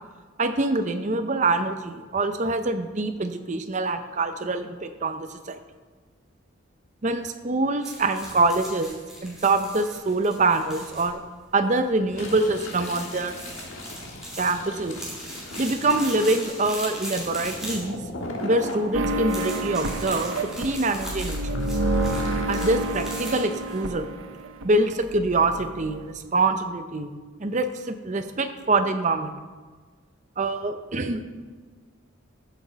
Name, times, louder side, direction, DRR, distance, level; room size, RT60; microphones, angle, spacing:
voice 1, 0.4-5.6 7.0-9.0 9.2-11.2 11.5-13.4 14.4-15.0 15.6-18.0 18.4-21.4 22.5-24.1 24.6-27.1 27.4-29.3 30.4-31.2, right 2 dB, 35° right, 8 dB, 0.6 m, -25 dB
sound 1, 7.8-23.8, right 1 dB, 5° right, 2.6 m, -40 dB
Fill (with liquid), 12.0-18.8 19.4-22.7, left 2 dB, 75° left, 1.4 m, -39 dB
sound 2, 18.9-24.7 24.9-26.1, right 1 dB, 80° right, 0.7 m, -29 dB
14.0 x 6.1 x 4.0 m, 1.4 s
head